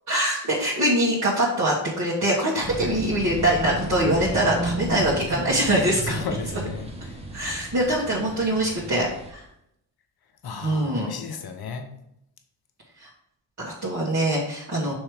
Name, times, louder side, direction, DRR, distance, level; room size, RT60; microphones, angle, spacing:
voice 1, 0.1-6.2 6.5-6.6 7.3-9.4 10.5-11.2 13.0-13.1 13.6-14.9, right 1 dB, 35° right, -6 dB, 2.1 m, -23 dB
sound 1, 2.6-9.3, right 1 dB, 15° right, 1.5 m, -33 dB
voice 2, 6.0-7.2 10.4-11.9, left 5 dB, 55° left, 6 dB, 1.1 m, -34 dB
6.4 x 3.2 x 4.9 m, 0.78 s
hypercardioid pair, 45°, 46 cm